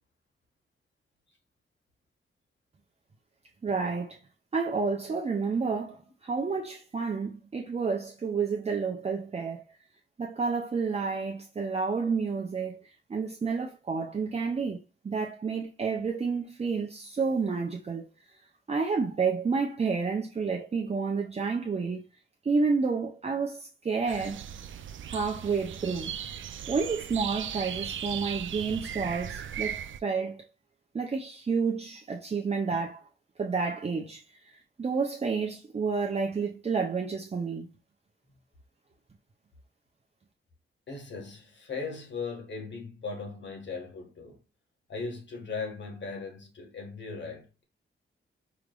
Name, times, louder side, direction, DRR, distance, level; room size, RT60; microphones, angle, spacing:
voice 1, 3.6-4.2 4.5-9.6 10.2-12.8 13.1-14.8 15.0-18.1 18.7-22.0 22.4-24.4 25.1-26.1 26.7-30.4 30.9-33.0 33.4-34.2 34.8-37.7, right 5 dB, 30° right, 0.6 m, -30 dB
sound 1, 24.1-30.0, right 9 dB, 75° right, 0.4 m, -37 dB
voice 2, 40.9-44.4 44.9-47.6, left 4 dB, 65° left, 1.6 m, -38 dB
4.8 x 3.3 x 2.4 m
wide cardioid pair, 165°, 20 cm